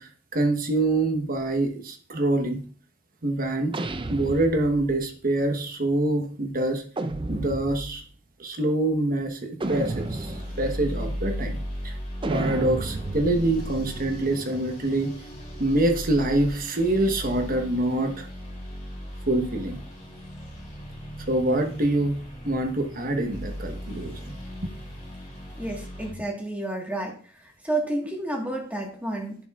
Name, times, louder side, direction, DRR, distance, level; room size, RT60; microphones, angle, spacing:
voice 1, 0.0-2.6 3.2-3.7 4.1-6.8 7.3-8.0 8.4-9.4 9.7-11.6 11.8-11.9 12.3-15.1 15.6-18.3 19.3-19.8 21.3-22.2 22.4-24.3, right 2 dB, 45° right, 5 dB, 1.2 m, -25 dB
sound 1, 3.7-5.0 7.0-8.0 9.6-10.7 12.2-14.9, right 2 dB, 25° right, 0.5 m, -33 dB
sound 2, 9.6-26.1, equal, 30° left, 3.1 m, -37 dB
voice 2, 25.6-27.1 27.6-29.3, right 2 dB, 10° right, 0 dB, 1.5 m, -30 dB
10.5 x 6.9 x 2.4 m, 0.43 s
head